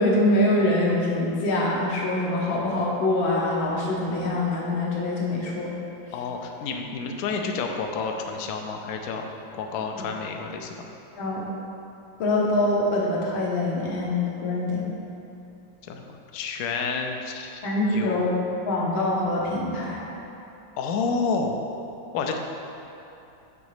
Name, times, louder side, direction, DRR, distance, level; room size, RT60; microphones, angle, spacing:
voice 1, 0.0-5.7 11.2-11.4 12.2-14.9 17.6-18.4 18.7-20.1, left 1 dB, 90° left, -3 dB, 1.8 m, -24 dB
voice 2, 6.1-10.9 15.9-17.6 17.9-18.3 20.8-21.6 22.1-22.4, left 4 dB, 75° left, 3 dB, 0.8 m, -30 dB
7.3 x 3.9 x 4.9 m, 2.8 s
omnidirectional pair, 2.1 m